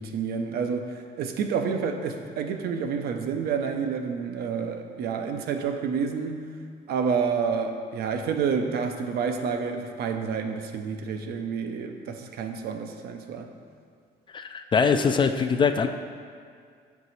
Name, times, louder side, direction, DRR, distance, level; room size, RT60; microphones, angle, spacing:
voice 1, 0.0-6.4 6.9-13.5, right 6 dB, 70° right, 5 dB, 0.6 m, -29 dB
voice 2, 14.3-15.9, left 5 dB, 30° left, 7 dB, 0.3 m, -22 dB
6.7 x 4.7 x 4.1 m, 2.2 s
cardioid pair, 110°, 17 cm